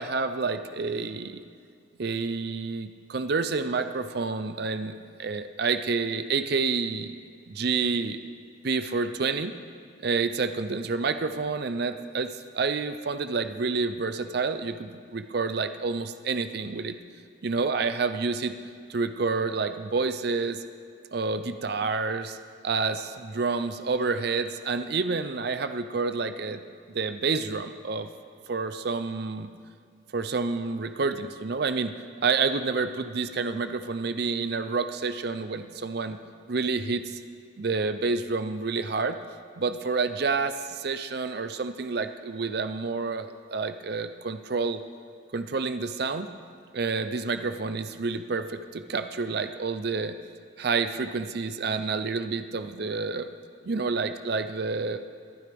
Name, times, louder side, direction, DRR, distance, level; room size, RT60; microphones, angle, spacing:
voice 1, 0.0-1.4 2.0-7.1 7.5-8.2 8.6-9.5 10.0-17.0 17.4-18.5 18.9-20.6 21.1-22.4 22.6-26.6 26.9-28.1 28.5-29.5 30.1-31.9 32.2-36.2 36.5-37.2 37.6-39.2 39.6-44.8 45.3-46.3 46.7-50.2 50.6-53.3 53.6-55.0, right 4 dB, 55° right, 9 dB, 0.5 m, -29 dB
22.0 x 11.5 x 3.5 m, 2.2 s
head